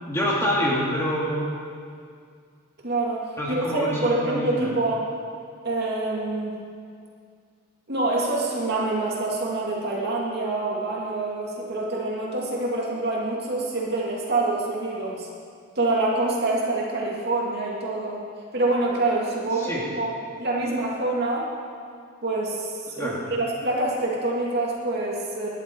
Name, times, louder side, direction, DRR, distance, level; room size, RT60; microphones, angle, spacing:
voice 1, 0.1-1.5 3.4-4.7 19.6-19.8 23.0-23.2, equal, 10° left, -5 dB, 2.6 m, -26 dB
voice 2, 2.8-5.0 5.6-6.6 7.9-15.3 15.8-18.2 18.5-20.1 20.4-21.5 22.2-25.5, right 2 dB, 45° right, -3 dB, 2.5 m, -26 dB
18.5 x 11.5 x 4.6 m, 2.2 s
head